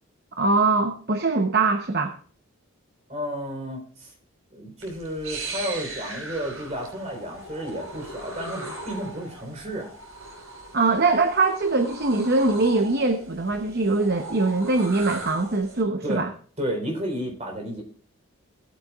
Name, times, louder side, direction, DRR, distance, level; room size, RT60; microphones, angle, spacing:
voice 1, 0.4-2.2 10.7-16.3, right 3 dB, 50° right, 6 dB, 0.8 m, -22 dB
voice 2, 3.1-4.1 4.5-9.9 16.0-16.3 16.6-17.8, equal, 30° right, 1 dB, 4.0 m, -32 dB
sound 1, 4.8-15.8, right 2 dB, 80° right, 5.5 m, -39 dB
18.0 x 8.9 x 2.4 m, 0.43 s
head